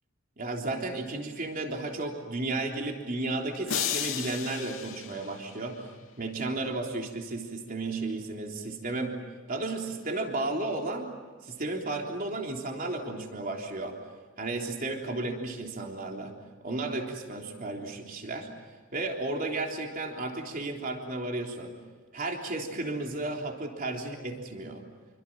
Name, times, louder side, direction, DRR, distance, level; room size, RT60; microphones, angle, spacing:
voice 1, 0.4-5.8 6.2-11.1 11.4-14.0 14.4-16.3 16.6-18.5 18.9-21.7 22.1-24.8, right 2 dB, 45° right, 1 dB, 3.6 m, -33 dB
sound 1, 3.7-6.0, left 8 dB, 85° left, 2.9 m, -34 dB
27.5 x 25.0 x 7.5 m, 1.4 s
head